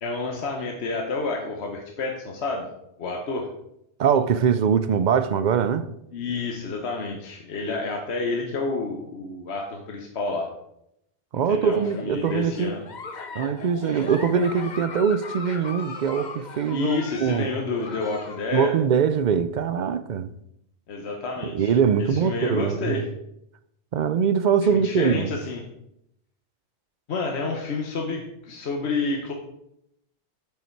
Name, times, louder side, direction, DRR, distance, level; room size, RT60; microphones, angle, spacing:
voice 1, 0.0-2.7 3.0-3.5 6.1-10.5 11.5-12.8 16.7-18.7 20.9-21.7 22.1-23.0 24.7-25.6 27.1-29.3, left 3 dB, 70° left, 1.3 m, -29 dB
voice 2, 4.0-5.9 11.3-12.7 13.3-17.5 18.5-20.3 21.4-23.0 23.9-25.3, right 7 dB, 55° right, 0.5 m, -22 dB
Giggle, 11.8-18.5, left 4 dB, 45° left, 0.8 m, -38 dB
8.1 x 7.2 x 4.5 m
omnidirectional pair, 1.1 m